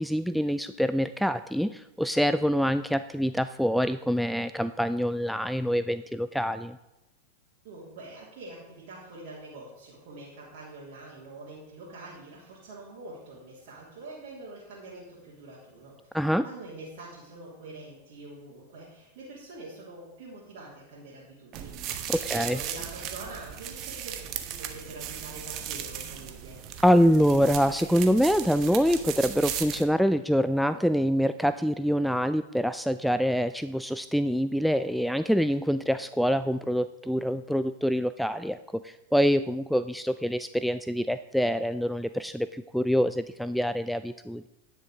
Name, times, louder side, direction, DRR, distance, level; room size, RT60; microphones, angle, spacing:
voice 1, 0.0-6.8 16.1-16.4 22.2-22.6 26.8-44.5, equal, ahead, 12 dB, 0.3 m, -25 dB
voice 2, 7.6-16.0 16.4-22.0 22.3-26.6, right 2 dB, 60° right, -7 dB, 3.1 m, -45 dB
sound 1, 21.5-29.8, right 10 dB, 45° right, 1.1 m, -37 dB
10.0 x 6.6 x 4.9 m, 0.96 s
hypercardioid pair, 100°, 0 cm